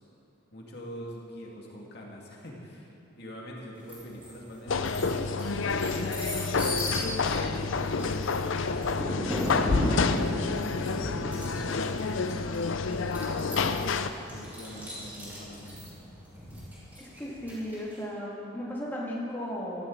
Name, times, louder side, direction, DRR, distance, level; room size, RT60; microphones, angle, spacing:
voice 1, 0.5-13.1 14.2-16.0, equal, 50° left, -2 dB, 2.2 m, -44 dB
sound 1, 3.9-4.3 4.7-18.0, left 1 dB, 10° right, 3.5 m, -36 dB
sound 2, 4.7-14.1, left 4 dB, 65° left, 0.6 m, -29 dB
voice 2, 17.0-19.9, equal, 10° left, -5 dB, 2.4 m, -35 dB
16.5 x 13.5 x 4.0 m, 3.0 s
head